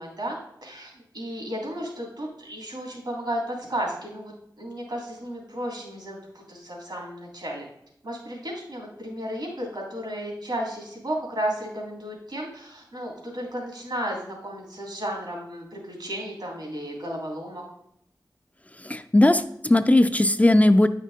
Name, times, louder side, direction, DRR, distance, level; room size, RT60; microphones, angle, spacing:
voice 1, 0.0-7.7 8.0-17.6, right 1 dB, 75° right, -2 dB, 2.8 m, -33 dB
voice 2, 18.9-20.9, left 1 dB, 20° left, 9 dB, 0.4 m, -18 dB
9.5 x 5.7 x 3.6 m, 0.75 s
wide cardioid pair, 80°, 8 cm